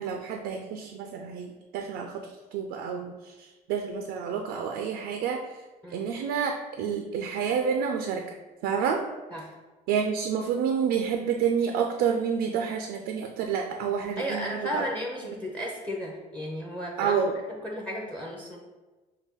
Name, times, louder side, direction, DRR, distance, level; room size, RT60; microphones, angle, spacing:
voice 1, 0.0-5.5 5.9-8.3 8.6-9.1 9.9-14.8 15.2-15.3 17.0-17.4, right 7 dB, 90° right, 4 dB, 0.4 m, -29 dB
voice 2, 14.2-17.2 17.6-18.6, equal, 10° left, 0 dB, 0.6 m, -34 dB
5.5 x 2.2 x 3.5 m, 1.2 s
cardioid pair, 110°, 17 cm